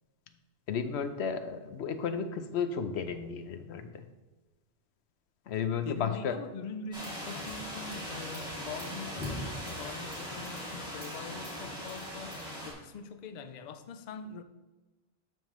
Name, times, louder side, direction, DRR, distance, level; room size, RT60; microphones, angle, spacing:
voice 1, 0.7-4.0 5.5-6.4, left 6 dB, 85° left, 1.0 m, -33 dB
voice 2, 5.8-12.3 12.6-14.4, left 5 dB, 50° left, 0.6 m, -43 dB
sound 1, 6.9-12.7, equal, 5° right, 2.5 m, -39 dB
12.0 x 5.5 x 3.1 m
omnidirectional pair, 1.1 m